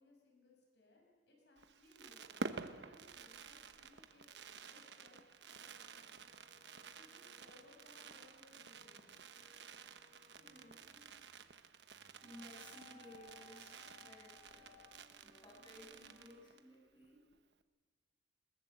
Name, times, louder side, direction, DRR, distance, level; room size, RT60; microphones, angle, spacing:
voice 1, 0.0-4.3 4.7-5.2 5.4-6.1 7.0-9.3, left 2 dB, 75° left, -1 dB, 6.2 m, -66 dB
Fireworks, 1.6-16.7 17.0-17.1 17.3-17.6, right 4 dB, 85° right, 1.1 m, -51 dB
sound 1, 5.6-16.5, left 4 dB, 35° right, 5.0 m, -65 dB
voice 2, 10.4-11.1 11.8-14.9 15.2-17.2, left 1 dB, 25° left, -2 dB, 6.9 m, -58 dB
21.5 x 20.5 x 7.9 m, 1.4 s
head